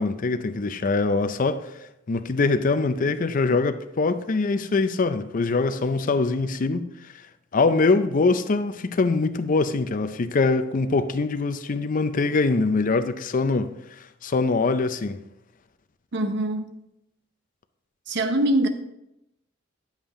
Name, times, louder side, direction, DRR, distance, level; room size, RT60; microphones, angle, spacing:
voice 1, 0.0-1.7 2.1-7.1 7.5-13.7 14.2-15.2, left 3 dB, 45° left, 0.5 m, -23 dB
voice 2, 16.1-16.7 18.1-18.7, right 1 dB, 60° right, 0.8 m, -23 dB
8.8 x 7.3 x 3.7 m
head